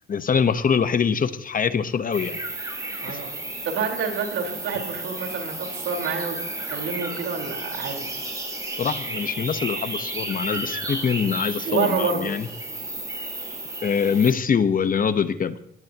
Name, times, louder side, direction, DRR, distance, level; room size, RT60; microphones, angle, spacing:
voice 1, 0.1-2.4 3.1-3.2 8.8-12.5 13.8-15.6, left 6 dB, 45° left, 11 dB, 1.1 m, -23 dB
sound 1, 2.1-14.3, right 2 dB, 15° right, 5.1 m, -33 dB
voice 2, 3.0-3.3 3.6-6.4 6.7-8.1 11.6-12.3, right 5 dB, 85° right, 2 dB, 4.4 m, -28 dB
24.5 x 19.0 x 3.0 m, 0.78 s
cardioid pair, 90°, 20 cm